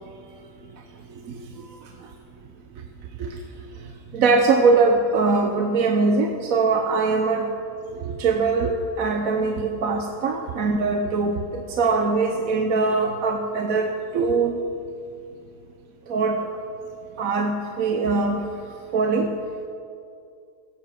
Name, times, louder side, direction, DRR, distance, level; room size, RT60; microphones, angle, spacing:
voice 1, 4.1-7.5 8.0-13.9 14.1-14.6 16.1-16.4 17.2-18.4 18.9-19.3, right 4 dB, 60° right, 4 dB, 1.2 m, -22 dB
15.5 x 8.6 x 7.5 m, 2.5 s
omnidirectional pair, 1.8 m